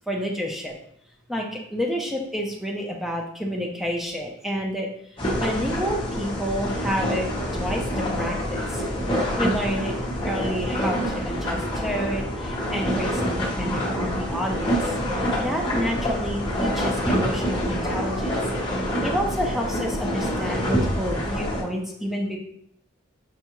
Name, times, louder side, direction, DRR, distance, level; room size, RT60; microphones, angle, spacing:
voice 1, 0.1-0.7 1.3-4.9 5.4-7.3 7.6-8.7 9.4-9.9 10.2-14.7 15.4-18.3 19.0-22.4, equal, ahead, -1 dB, 0.6 m, -29 dB
sound 1, 5.2-21.6, equal, 25° left, 0.9 m, -26 dB
5.5 x 2.4 x 3.0 m, 0.69 s
head